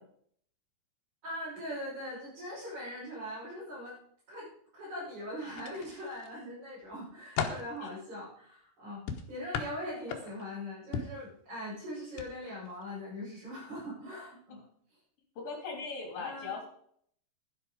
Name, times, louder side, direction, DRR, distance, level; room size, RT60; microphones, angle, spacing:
voice 1, 1.2-4.0 4.3-14.6 16.2-16.6, left 1 dB, 45° right, -10 dB, 7.5 m, -41 dB
sound 1, 5.5-6.3 6.8-7.7 9.1-10.5 10.9-11.2 12.1-12.3 12.7-12.8, left 7 dB, 75° left, 3.3 m, -36 dB
voice 2, 15.4-16.7, left 4 dB, 60° left, 2 dB, 4.9 m, -39 dB
11.5 x 11.5 x 4.9 m, 0.64 s
omnidirectional pair, 4.8 m